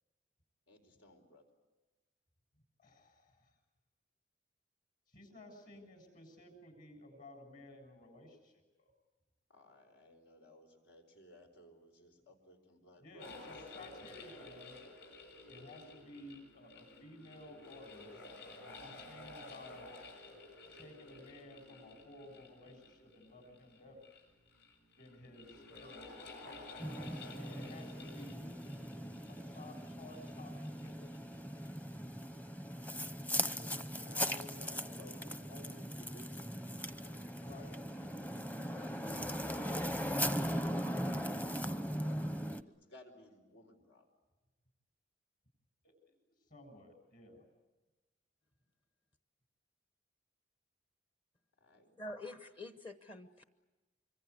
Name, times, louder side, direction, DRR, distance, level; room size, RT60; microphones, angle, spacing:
voice 1, 0.7-1.5 9.5-13.5 34.0-37.6 41.0-44.1 51.6-52.0, left 1 dB, 85° left, 5 dB, 4.7 m, -60 dB
voice 2, 2.8-3.5 5.1-8.5 13.0-14.8 15.5-18.3 18.8-19.9 20.7-24.0 25.0-26.7 27.4-28.6 29.3-31.1 33.5-35.1 35.7-35.9 37.4-37.8 45.8-45.9 46.5-47.5, left 1 dB, 50° left, 4 dB, 7.5 m, -55 dB
sound 1, 13.2-31.8, left 3 dB, 65° left, 7.4 m, -53 dB
sound 2, 26.8-42.6, equal, 10° left, 0.8 m, -39 dB
voice 3, 52.0-53.4, left 2 dB, 30° left, 8 dB, 1.0 m, -46 dB
26.0 x 24.5 x 8.4 m, 1.1 s
head